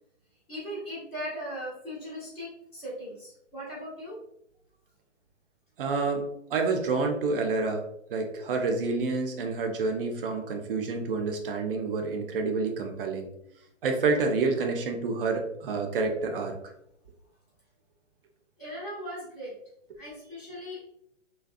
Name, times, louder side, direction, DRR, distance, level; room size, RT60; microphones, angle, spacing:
voice 1, 0.5-4.2 18.6-19.5 20.0-20.8, equal, 10° left, -11 dB, 0.5 m, -38 dB
voice 2, 5.8-7.8 8.1-13.3 13.8-16.6, right 4 dB, 45° right, 3 dB, 0.5 m, -28 dB
2.5 x 2.2 x 2.4 m, 0.75 s
figure-of-eight pair, 135°, 37 cm